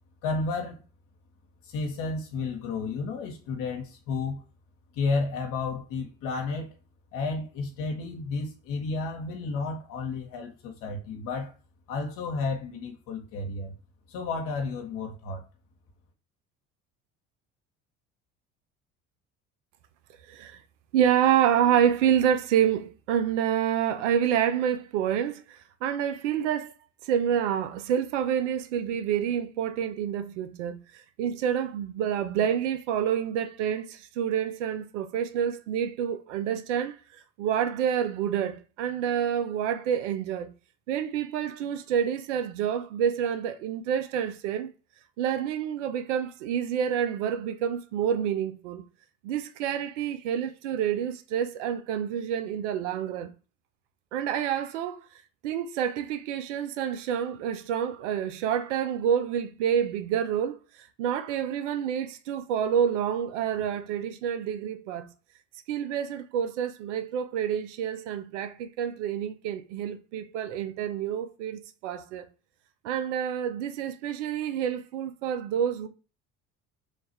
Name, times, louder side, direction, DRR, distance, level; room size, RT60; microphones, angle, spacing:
voice 1, 0.2-0.8 1.6-4.4 4.9-6.7 7.1-11.5 11.9-13.8 14.1-15.5, left 4 dB, 65° left, 0.9 m, -32 dB
voice 2, 20.3-20.6 20.9-26.7 27.0-37.0 37.4-40.5 40.9-44.7 45.2-48.8 49.2-53.3 54.1-55.1 55.4-60.6 61.0-65.1 65.7-72.3 72.8-75.9, right 9 dB, 90° right, 0.5 m, -28 dB
3.3 x 2.4 x 4.2 m
hypercardioid pair, 75°, 35 cm